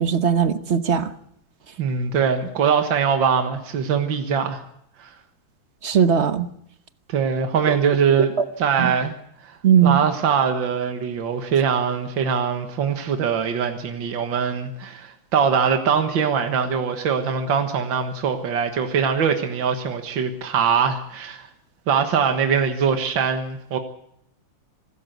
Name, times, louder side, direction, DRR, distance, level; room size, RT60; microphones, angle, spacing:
voice 1, 0.0-1.1 5.8-6.5 8.8-8.9 9.6-10.0, right 8 dB, 45° right, 11 dB, 1.1 m, -18 dB
voice 2, 1.8-4.6 5.0-5.1 7.1-9.1 9.4-21.5 21.9-23.8, right 6 dB, 80° right, 6 dB, 2.2 m, -22 dB
25.0 x 13.5 x 8.1 m, 0.73 s
omnidirectional pair, 2.1 m